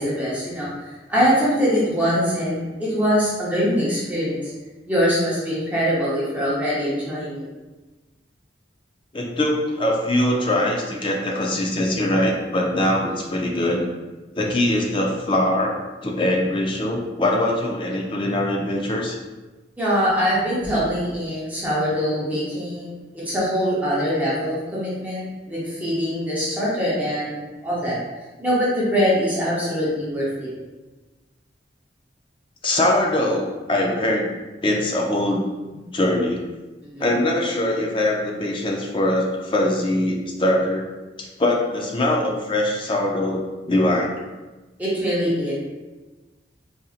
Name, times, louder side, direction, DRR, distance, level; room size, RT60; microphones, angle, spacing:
voice 1, 0.0-4.5 4.9-7.5 19.8-27.3 27.6-28.0 28.4-30.5 36.8-37.1 44.8-45.5, equal, 10° right, -8 dB, 0.8 m, -23 dB
voice 2, 9.1-13.8 14.4-15.8 16.0-19.2 32.6-34.3 34.6-35.4 35.9-36.4 37.0-40.9 41.2-44.2, left 1 dB, 25° left, 0 dB, 0.4 m, -22 dB
4.0 x 2.7 x 2.4 m, 1.2 s
head